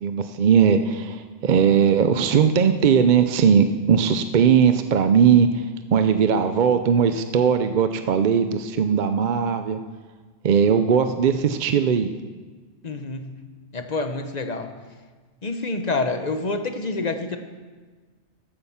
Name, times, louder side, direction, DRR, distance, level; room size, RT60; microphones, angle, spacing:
voice 1, 0.0-9.8 10.4-12.1, right 7 dB, 55° right, 9 dB, 0.6 m, -19 dB
voice 2, 12.8-13.3 13.7-14.7 15.4-17.4, left 3 dB, 40° left, 7 dB, 0.9 m, -27 dB
13.5 x 8.9 x 5.6 m, 1.4 s
omnidirectional pair, 1.2 m